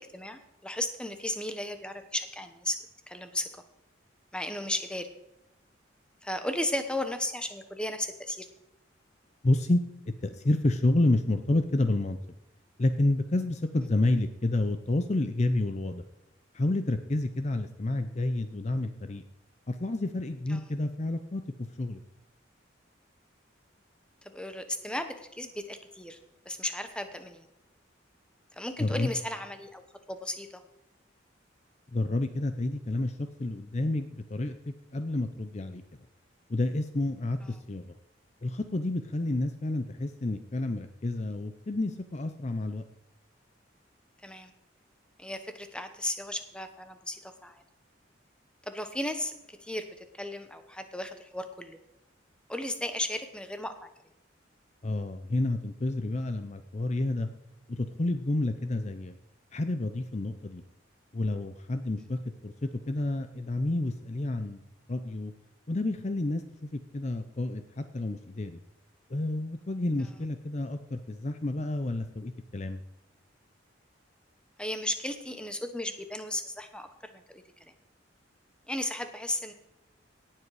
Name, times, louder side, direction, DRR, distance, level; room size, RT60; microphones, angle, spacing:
voice 1, 0.0-2.8 3.1-3.5 4.3-5.1 6.2-8.5 20.5-20.6 24.2-26.2 26.4-27.5 28.5-29.8 30.1-30.6 37.4-37.5 44.2-44.5 45.2-47.6 48.7-51.8 52.5-53.9 74.6-76.9 77.1-77.4 78.7-79.5, left 1 dB, 5° left, 8 dB, 1.0 m, -35 dB
voice 2, 9.4-9.8 10.2-12.2 12.8-16.0 16.5-19.2 19.7-22.0 28.8-29.1 31.9-35.8 36.5-37.9 38.4-42.8 54.8-57.3 57.7-59.1 59.5-60.6 61.1-64.6 64.9-65.3 65.7-68.6 69.1-72.8, left 2 dB, 35° left, 9 dB, 0.6 m, -29 dB
17.5 x 7.6 x 4.8 m, 0.93 s
head